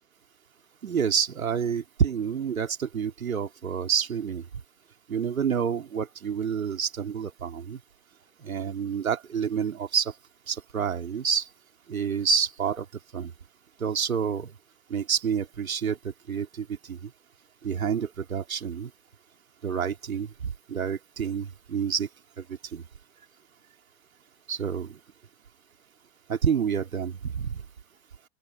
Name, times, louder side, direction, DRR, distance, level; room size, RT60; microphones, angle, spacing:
voice 1, 0.8-4.4 5.1-7.8 8.4-10.1 10.5-11.5 11.9-12.8 13.1-13.3 13.8-14.5 14.9-17.1 17.6-18.9 19.6-22.1 22.4-22.5 22.7-22.8 24.5-25.0 26.3-27.6, right 7 dB, 75° right, 3.1 m, -28 dB
open air
figure-of-eight pair, 80°, 41 cm